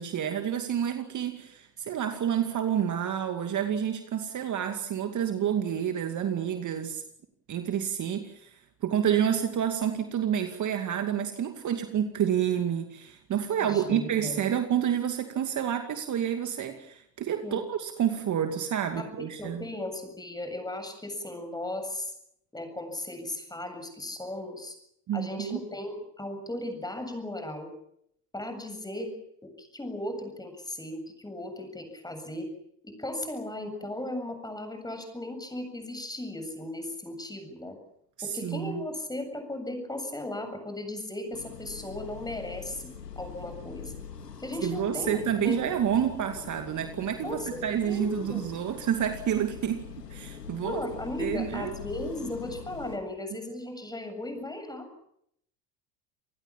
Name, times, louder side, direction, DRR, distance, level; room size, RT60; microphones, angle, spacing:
voice 1, 0.0-7.0 7.5-8.5 8.8-19.6 25.1-25.6 38.2-38.8 44.6-50.8 51.2-51.7, right 9 dB, 40° right, 6 dB, 2.5 m, -29 dB
voice 2, 13.6-14.4 17.4-17.6 19.0-19.1 19.4-22.1 22.5-24.8 25.1-27.7 28.3-29.1 29.4-32.5 32.8-37.8 38.2-43.9 44.4-45.6 47.2-48.4 50.6-54.9, left 1 dB, 10° left, 7 dB, 7.7 m, -36 dB
sound 1, 41.3-53.0, left 7 dB, 85° left, 2.5 m, -43 dB
27.5 x 19.5 x 7.4 m, 0.73 s
hypercardioid pair, 70°, 47 cm